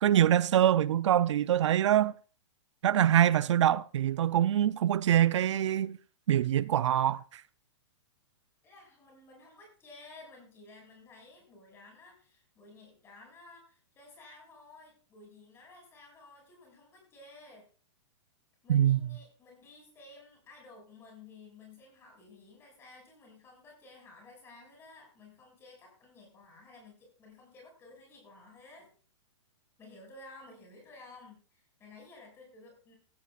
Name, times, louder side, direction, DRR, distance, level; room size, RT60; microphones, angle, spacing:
voice 1, 0.0-2.1 2.8-6.0 6.3-7.4 18.7-19.1, right 11 dB, 70° right, 0.5 m, -24 dB
voice 2, 8.6-17.7 18.6-28.9 29.8-33.0, left 3 dB, 15° left, 5.8 m, -54 dB
16.0 x 14.0 x 2.4 m
hypercardioid pair, 170°, 16 cm